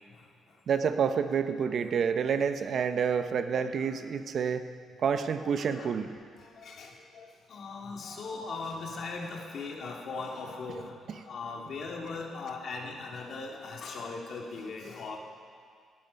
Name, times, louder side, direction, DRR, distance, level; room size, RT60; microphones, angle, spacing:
voice 1, 0.7-4.7 5.0-6.1, right 6 dB, 60° right, 9 dB, 0.8 m, -28 dB
voice 2, 5.4-6.0 6.3-15.2, left 4 dB, 60° left, 0 dB, 2.2 m, -39 dB
18.0 x 11.0 x 5.2 m, 2.1 s
cardioid pair, 90°, 0 cm